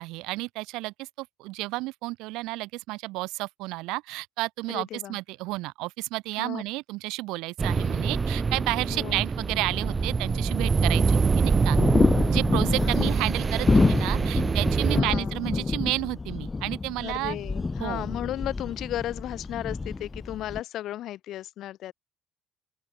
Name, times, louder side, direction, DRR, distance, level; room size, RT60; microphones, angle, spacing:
voice 1, 0.0-11.8 12.3-17.4 17.8-18.1, right 21 dB, 90° right, 2.3 m, -31 dB
voice 2, 4.7-5.2 6.4-6.6 8.9-9.2 12.8-13.2 14.9-15.4 17.0-21.9, left 13 dB, 55° left, 1.5 m, -35 dB
sound 1, 7.6-15.0, right 4 dB, 20° right, 0.8 m, -25 dB
sound 2, 9.4-20.6, left 3 dB, 15° left, 1.7 m, -28 dB
open air
cardioid pair, 165°, 0 cm